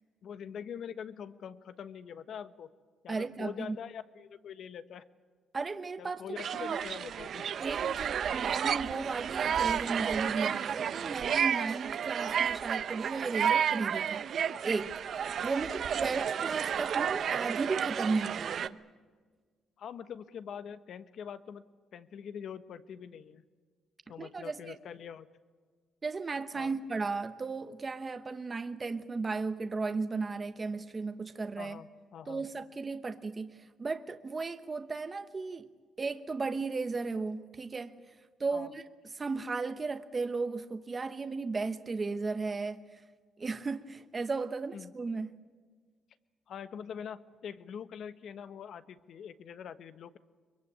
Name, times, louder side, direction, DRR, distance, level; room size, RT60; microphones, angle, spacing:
voice 1, 0.2-2.7 3.0-5.0 6.0-7.5 19.8-21.7 21.9-23.4 24.1-25.3 26.5-26.8 31.6-32.4 38.5-38.7 44.7-44.9 46.5-50.2, left 8 dB, 65° left, 1.2 m, -44 dB
voice 2, 3.1-3.8 5.5-6.2 6.6-6.8 7.6-14.3 14.6-15.0 15.4-18.8 24.2-24.8 26.0-31.8 32.3-35.7 36.0-37.9 38.4-38.8 39.1-43.0 43.4-45.4, right 4 dB, 30° right, 1.0 m, -35 dB
sound 1, 6.4-18.7, right 8 dB, 60° right, 0.8 m, -31 dB
23.0 x 22.5 x 8.6 m
cardioid pair, 90°, 0 cm